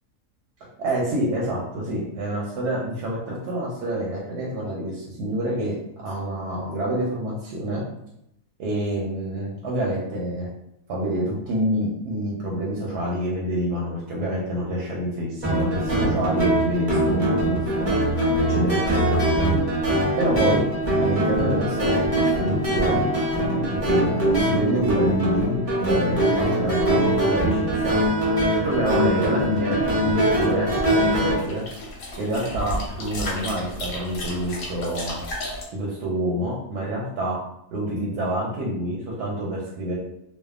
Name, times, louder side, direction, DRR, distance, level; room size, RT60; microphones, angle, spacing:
voice 1, 0.8-7.8 8.6-10.5 10.9-17.9 18.5-19.2 20.2-20.6 21.0-23.0 23.7-25.5 25.8-28.0 28.3-31.6 32.2-35.2 35.7-37.4 37.7-39.9, right 1 dB, 85° right, -4 dB, 1.2 m, -27 dB
sound 1, 15.4-31.3, right 1 dB, 45° right, 0.4 m, -22 dB
sound 2, 31.2-35.6, left 1 dB, 70° left, 1.0 m, -33 dB
2.6 x 2.2 x 2.3 m, 0.81 s
omnidirectional pair, 1.7 m